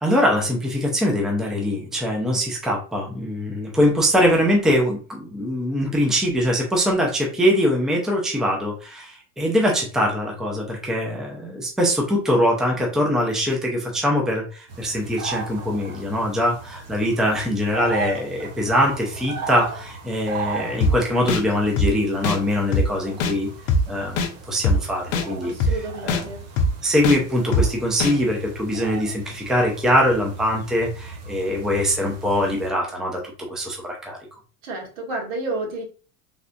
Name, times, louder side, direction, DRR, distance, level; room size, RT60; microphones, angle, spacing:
voice 1, 0.0-23.5 23.9-25.5 26.0-26.2 26.8-33.2 33.5-34.2, equal, ahead, -1 dB, 0.6 m, -22 dB
sound 1, 14.7-32.7, right 5 dB, 40° right, 0.8 m, -36 dB
sound 2, 20.8-20.9 21.3-21.4 21.8-21.9 22.2-22.4 22.7-22.9 23.2-23.3 23.7-23.8 24.2-24.3 24.6-24.8 25.1-25.3 25.6-25.7 26.1-26.2 26.6-26.7 27.0-27.2 27.5-27.7 28.0-28.1, left 2 dB, 60° left, 0.6 m, -20 dB
voice 2, 25.4-26.4 34.6-35.8, right 2 dB, 75° right, -1 dB, 1.6 m, -30 dB
3.4 x 2.4 x 2.5 m, 0.38 s
supercardioid pair, 120°, 40 cm